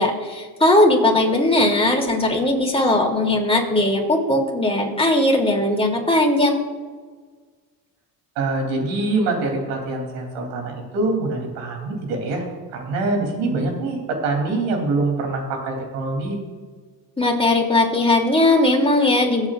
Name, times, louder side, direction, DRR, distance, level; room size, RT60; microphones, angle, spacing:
voice 1, 0.0-6.6 17.2-19.5, left 1 dB, 10° left, 0 dB, 3.0 m, -18 dB
voice 2, 8.3-12.4 12.7-16.4, right 3 dB, 80° right, 2 dB, 3.4 m, -24 dB
22.5 x 8.4 x 2.5 m, 1.5 s
supercardioid pair, 75°, 47 cm